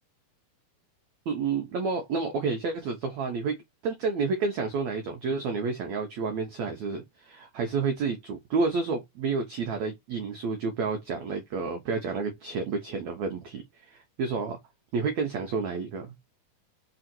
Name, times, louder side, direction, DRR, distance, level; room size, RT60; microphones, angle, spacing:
voice 1, 1.3-3.6 3.8-14.6 14.9-16.1, right 4 dB, 85° right, 1.5 m, -30 dB
5.6 x 3.9 x 4.4 m
omnidirectional pair, 4.6 m